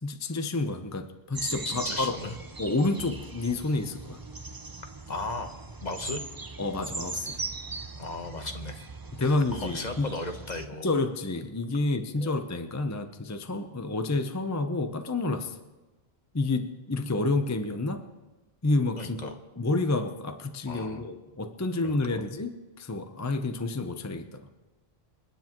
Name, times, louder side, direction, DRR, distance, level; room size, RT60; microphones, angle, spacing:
voice 1, 0.0-2.2 2.6-4.2 6.6-7.4 9.1-10.1 10.8-15.6 16.3-18.1 18.6-24.5, left 2 dB, 20° left, 7 dB, 0.6 m, -29 dB
sound 1, 1.3-10.7, right 3 dB, 25° right, 0.7 m, -39 dB
voice 2, 1.6-2.3 5.1-5.5 5.8-6.2 8.0-8.9 9.2-10.9 12.2-12.4 19.0-19.3 20.7-21.0 21.8-22.2, left 3 dB, 45° left, 6 dB, 1.1 m, -36 dB
29.0 x 9.8 x 3.0 m, 1.2 s
omnidirectional pair, 1.1 m